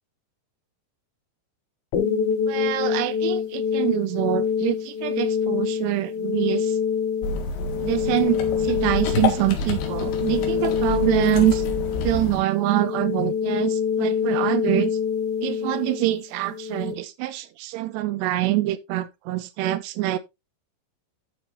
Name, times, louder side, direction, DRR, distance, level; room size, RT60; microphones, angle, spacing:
sound 1, 1.9-16.9, left 7 dB, 55° left, 3.5 m, -26 dB
voice 1, 2.5-6.7 7.8-11.6 12.0-15.0 15.4-20.2, right 16 dB, 80° right, 2.7 m, -25 dB
sound 2, 7.2-12.4, left 4 dB, 80° left, 4.1 m, -28 dB
12.0 x 7.2 x 2.7 m
omnidirectional pair, 5.2 m